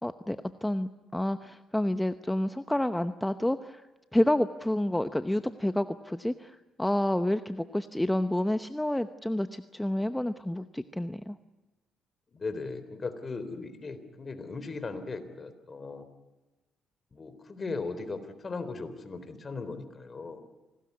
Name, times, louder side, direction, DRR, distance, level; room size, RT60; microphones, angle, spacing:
voice 1, 0.0-3.8 4.1-11.4, left 1 dB, 5° left, 10 dB, 0.9 m, -29 dB
voice 2, 12.3-16.1 17.1-20.4, left 3 dB, 35° left, 11 dB, 3.7 m, -38 dB
26.5 x 19.0 x 9.7 m, 1.1 s
cardioid pair, 90°, 0 cm